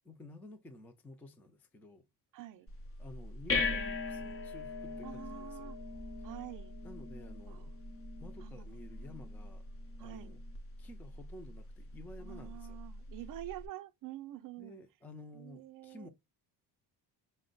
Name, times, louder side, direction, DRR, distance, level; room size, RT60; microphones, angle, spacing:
voice 1, 0.0-2.0 3.0-5.7 6.8-7.8 8.2-9.7 10.0-10.4 10.8-12.8 14.6-16.1, left 1 dB, 5° left, 0.4 m, -52 dB
voice 2, 2.3-2.7 5.0-5.8 6.2-6.8 7.5-7.7 8.4-8.8 10.0-10.4 12.2-14.8 15.3-16.1, right 15 dB, 50° right, 0.5 m, -47 dB
sound 1, 2.7-13.7, left 3 dB, 30° left, 0.7 m, -41 dB
5.2 x 2.1 x 3.8 m
cardioid pair, 145°, 43 cm